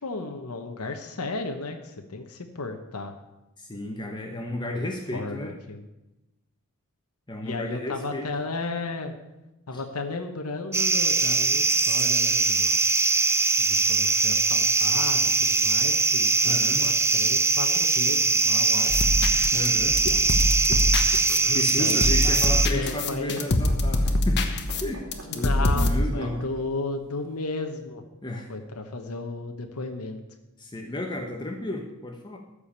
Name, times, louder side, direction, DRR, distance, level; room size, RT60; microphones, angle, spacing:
voice 1, 0.0-3.1 4.7-5.8 7.4-9.2 9.7-12.8 13.6-19.1 21.3-22.0 22.2-23.5 25.3-28.0 28.5-30.2, left 3 dB, 80° left, 5 dB, 1.0 m, -34 dB
voice 2, 3.6-5.6 7.3-8.3 9.7-9.8 16.4-16.9 18.7-18.9 19.5-20.0 21.5-24.4 24.8-25.0 25.3-26.4 28.2-28.5 30.6-32.4, left 1 dB, 20° left, 2 dB, 1.0 m, -33 dB
sound 1, 10.7-22.7, right 4 dB, 10° right, 0.5 m, -22 dB
sound 2, 18.9-26.1, left 1 dB, 50° left, 1.1 m, -25 dB
sound 3, 21.8-26.7 27.3-27.4, right 2 dB, 60° right, 2.5 m, -45 dB
13.5 x 5.0 x 8.7 m, 0.98 s
head